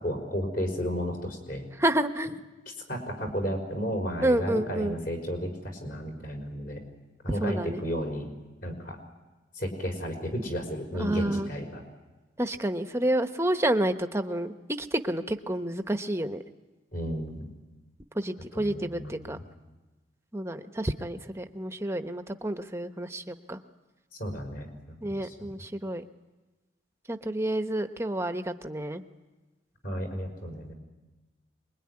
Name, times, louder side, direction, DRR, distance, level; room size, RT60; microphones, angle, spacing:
voice 1, 0.0-1.7 2.9-6.8 7.2-8.3 8.6-9.0 9.5-11.8 16.9-17.5 18.5-19.4 24.2-25.3 29.8-30.7, equal, 50° left, 3 dB, 5.3 m, -33 dB
voice 2, 1.8-2.4 4.2-4.9 7.4-7.8 11.0-11.5 12.4-16.4 18.1-19.4 20.3-23.6 25.0-26.0 27.1-29.0, right 1 dB, 15° right, 8 dB, 1.0 m, -29 dB
25.5 x 22.0 x 9.8 m, 1.2 s
head